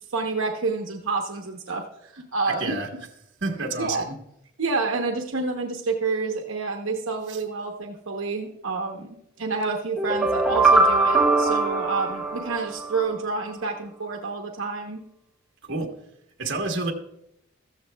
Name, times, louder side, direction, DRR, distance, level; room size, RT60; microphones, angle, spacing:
voice 1, 0.1-2.7 3.8-4.1 4.6-15.0, right 4 dB, 75° right, 2 dB, 0.9 m, -28 dB
voice 2, 2.5-2.9 3.4-4.1 7.3-7.4 15.7-15.9 16.4-16.9, right 3 dB, 60° right, 1 dB, 1.3 m, -29 dB
sound 1, 10.0-13.0, right 3 dB, ahead, 1.4 m, -21 dB
14.0 x 14.0 x 2.3 m, 0.81 s
head